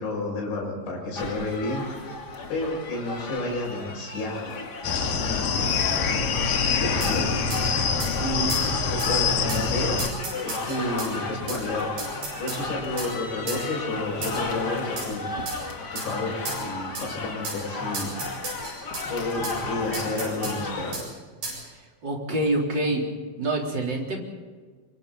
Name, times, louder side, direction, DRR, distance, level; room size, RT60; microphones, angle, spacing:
voice 1, 0.0-1.9 2.5-4.6 5.2-7.3 8.2-8.5 8.8-10.0 10.4-11.9 12.4-15.3 15.8-18.1 19.1-21.0, left 2 dB, 85° left, -2 dB, 9.0 m, -31 dB
sound 1, 1.1-21.0, left 3 dB, 40° left, 1.4 m, -34 dB
sound 2, 4.8-10.1, left 5 dB, 60° left, 3.2 m, -25 dB
sound 3, 7.0-7.2 7.5-7.6 8.0-8.1 8.5-8.7 9.0-9.1 9.5-9.6 10.0-11.1 11.5-11.6 12.0-12.6 13.0-13.1 13.5-13.6 14.2-14.5 15.0-15.1 15.5-15.6 16.0-16.1 16.5-16.6 17.0-17.1 17.4-17.6 17.9-19.1 19.4-19.6 19.9-20.6 20.9-21.1 21.4-21.6, right 3 dB, 60° right, 9.5 m, -34 dB
voice 2, 22.0-23.0 23.4-24.2, right 1 dB, 25° right, -1 dB, 4.0 m, -26 dB
25.5 x 25.0 x 4.2 m, 1.5 s
omnidirectional pair, 5.1 m